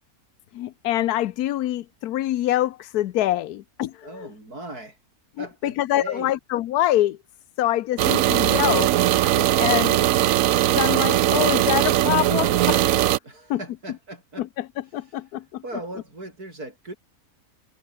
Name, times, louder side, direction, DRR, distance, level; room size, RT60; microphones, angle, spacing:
voice 1, 0.5-4.3 5.4-7.2 7.6-8.9 9.6-10.0 10.8-13.1 13.5-13.6 14.4-14.7 14.9-15.6, left 13 dB, 85° left, 1.2 m, -25 dB
voice 2, 4.0-5.0 5.4-6.3 13.2-14.5 15.6-17.0, right 2 dB, 85° right, 8.1 m, -38 dB
sound 1, 8.0-13.2, right 13 dB, 70° right, 1.0 m, -20 dB
omnidirectional pair, 1.6 m